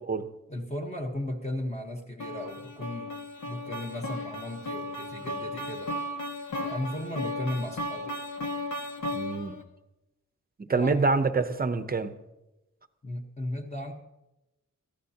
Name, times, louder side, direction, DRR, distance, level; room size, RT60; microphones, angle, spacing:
voice 1, 0.5-5.9 6.6-8.2 10.7-11.1 13.0-13.9, left 1 dB, 20° left, 1 dB, 1.2 m, -35 dB
sound 1, 2.2-9.6, left 1 dB, 70° left, 1.6 m, -35 dB
voice 2, 9.1-9.6 10.6-12.1, right 4 dB, 30° right, 10 dB, 0.8 m, -26 dB
21.5 x 15.0 x 2.9 m, 0.96 s
wide cardioid pair, 165°, 32 cm